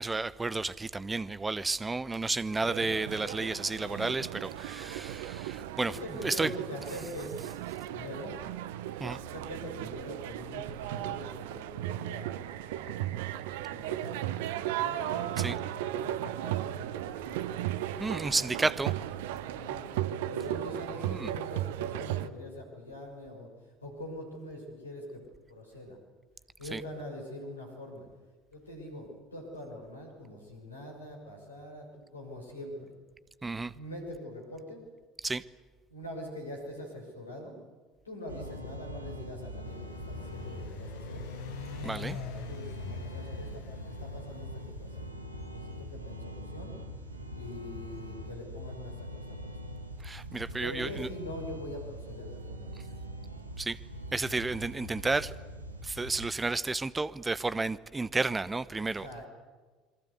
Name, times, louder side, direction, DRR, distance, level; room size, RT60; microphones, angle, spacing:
voice 1, 0.0-6.5 9.0-9.2 15.4-15.6 18.0-18.9 21.0-21.3 26.7-26.8 33.4-33.7 35.2-35.4 41.8-42.2 50.0-51.1 53.6-53.8 54.1-55.3 55.8-59.1, right 3 dB, 20° right, 1.0 m, -32 dB
sound 1, 2.6-22.3, right 13 dB, 65° right, 0.9 m, -36 dB
voice 2, 5.8-7.5 7.8-8.4 9.2-13.2 13.6-17.4 19.3-19.9 20.2-23.5 23.8-25.2 25.5-26.0 26.6-28.1 28.5-32.9 33.7-34.8 35.9-37.6 38.0-41.2 41.7-45.1 45.5-46.8 47.4-49.7 50.6-53.0 59.0-59.3, left 1 dB, 85° left, 6.2 m, -43 dB
sound 2, 38.3-56.3, equal, 90° right, 2.0 m, -42 dB
sound 3, 39.6-45.1, left 9 dB, 60° left, 1.7 m, -44 dB
27.5 x 23.0 x 8.2 m
figure-of-eight pair, 60°, 0 cm